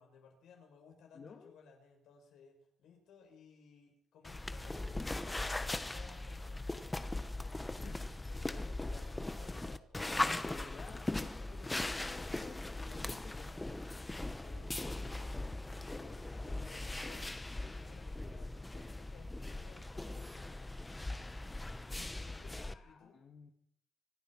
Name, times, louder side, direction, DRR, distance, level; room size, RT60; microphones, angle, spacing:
voice 1, 0.0-7.9 8.2-10.4 10.9-11.1 14.4-15.3 15.7-20.7 22.2-23.2, left 5 dB, 80° left, 2 dB, 5.9 m, -60 dB
voice 2, 1.1-1.6 7.8-8.2 8.6-8.7 10.4-13.6 22.6-23.5, left 5 dB, 50° left, 3 dB, 1.9 m, -53 dB
sound 1, 4.2-22.7, left 2 dB, 15° left, 1.1 m, -39 dB
25.5 x 9.2 x 6.0 m, 0.63 s
cardioid pair, 90°, 0 cm